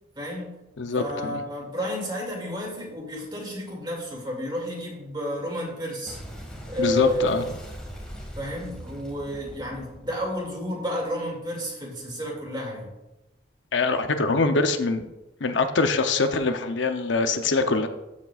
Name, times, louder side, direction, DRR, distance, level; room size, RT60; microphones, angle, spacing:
voice 1, 0.2-0.5 0.9-6.2 6.7-7.3 8.4-13.0, equal, 25° right, -1 dB, 2.4 m, -31 dB
voice 2, 0.8-1.4 6.8-7.4 13.7-15.1 15.4-17.9, left 3 dB, 85° left, 7 dB, 0.7 m, -23 dB
Boom, 6.1-11.3, equal, 5° left, 1.7 m, -41 dB
13.5 x 7.4 x 2.4 m, 0.98 s
head